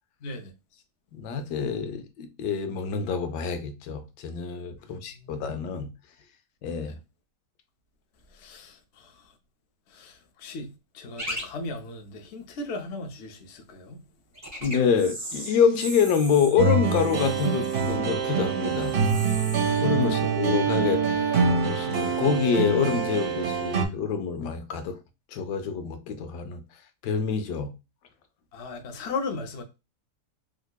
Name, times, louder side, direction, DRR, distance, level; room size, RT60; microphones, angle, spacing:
voice 1, 0.2-0.5 4.9-5.5 6.8-7.0 8.3-9.1 9.9-10.7 10.9-14.0 20.0-20.4 28.5-29.6, left 3 dB, 60° left, 0.7 m, -37 dB
voice 2, 1.1-5.9 6.6-6.9 14.6-19.0 19.8-21.3 21.6-25.0 25.3-26.6 27.0-27.7, left 6 dB, 85° left, 1.2 m, -26 dB
sound 1, 11.2-11.4 11.8-11.9 14.3-21.2 21.5-22.0 22.7-22.9, equal, 10° right, 1.0 m, -40 dB
sound 2, 16.6-23.9, right 5 dB, 45° right, 1.0 m, -25 dB
3.6 x 2.8 x 2.2 m
omnidirectional pair, 1.8 m